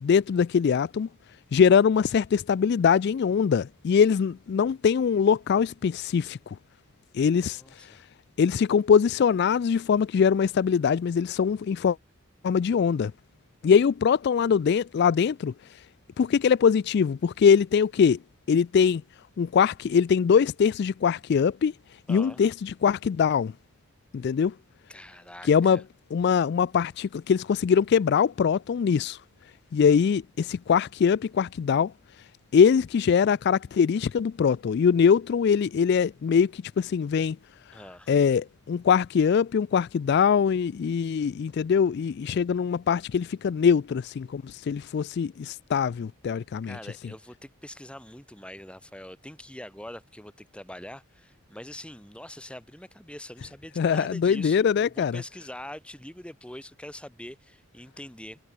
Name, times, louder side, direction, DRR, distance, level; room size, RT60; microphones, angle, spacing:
voice 1, 0.0-1.1 1.5-6.4 7.1-7.6 8.4-12.0 12.4-13.1 13.6-15.5 16.2-18.2 18.5-19.0 19.4-21.7 22.1-23.5 24.1-24.5 25.4-25.8 26.1-29.2 29.7-31.9 32.5-37.4 38.1-46.8 53.8-55.2, left 6 dB, 50° left, 0.3 m, -22 dB
voice 2, 7.3-8.0 22.1-22.4 24.9-25.8 37.7-38.2 46.7-58.4, left 1 dB, 5° left, 2.2 m, -43 dB
head